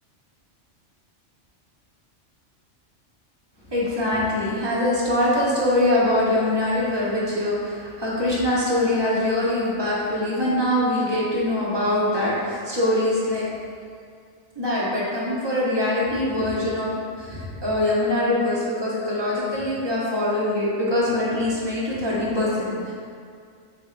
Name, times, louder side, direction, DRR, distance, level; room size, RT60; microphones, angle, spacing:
voice 1, 3.7-13.5 14.6-22.9, left 1 dB, 25° right, -7 dB, 0.9 m, -23 dB
6.5 x 2.9 x 2.5 m, 2.2 s
omnidirectional pair, 1.3 m